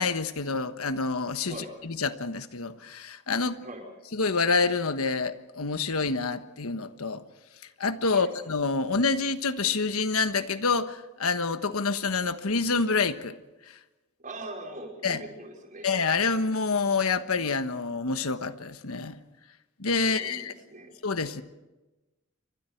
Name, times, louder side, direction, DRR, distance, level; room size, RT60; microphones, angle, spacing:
voice 1, 0.0-1.6 1.8-3.6 4.1-7.2 7.8-13.3 15.0-15.2 15.8-19.2 19.8-20.5 21.0-21.4, left 4 dB, 80° left, 10 dB, 1.3 m, -27 dB
voice 2, 14.2-15.9 20.0-20.9, right 1 dB, 40° right, 1 dB, 5.2 m, -41 dB
29.5 x 24.5 x 4.6 m, 1.1 s
head